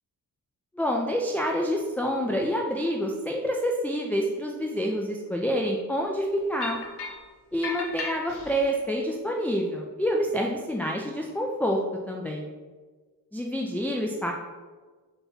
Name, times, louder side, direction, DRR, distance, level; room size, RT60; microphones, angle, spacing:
voice 1, 0.8-6.8 7.5-11.8 12.1-12.5 13.3-14.3, equal, 5° left, -1 dB, 0.4 m, -27 dB
sound 1, 6.6-7.3 7.6-8.7, left 4 dB, 90° left, 1.0 m, -35 dB
7.0 x 3.0 x 5.6 m, 1.4 s
wide cardioid pair, 180°, 39 cm